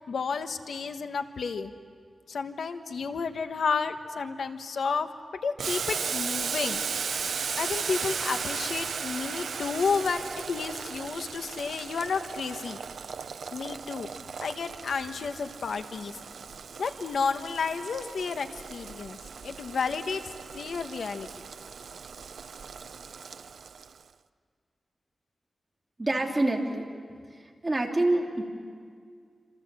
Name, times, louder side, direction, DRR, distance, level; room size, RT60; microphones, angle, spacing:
voice 1, 0.0-1.7 2.3-5.1 5.4-6.8 7.6-12.8 13.5-14.1 14.4-16.2 16.8-19.2 19.4-21.3, left 5 dB, 85° left, 8 dB, 1.3 m, -31 dB
Boiling, 5.6-24.0, right 6 dB, 90° right, 0.7 m, -36 dB
voice 2, 26.0-26.9 27.3-28.4, right 2 dB, 20° right, 1 dB, 2.9 m, -26 dB
27.5 x 27.0 x 7.6 m, 2.1 s
wide cardioid pair, 140°, 0 cm